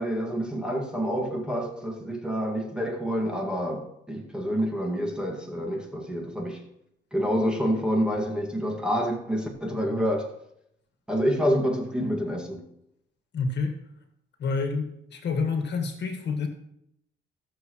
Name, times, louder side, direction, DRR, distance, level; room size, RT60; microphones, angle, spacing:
voice 1, 0.0-6.6 7.1-10.3 11.1-12.7, equal, 5° right, 2.1 m, -28 dB
voice 2, 13.3-13.8 14.4-16.5, left 4 dB, 60° left, 1.8 m, -28 dB
17.0 x 6.8 x 3.2 m
cardioid pair, 90°, 20 cm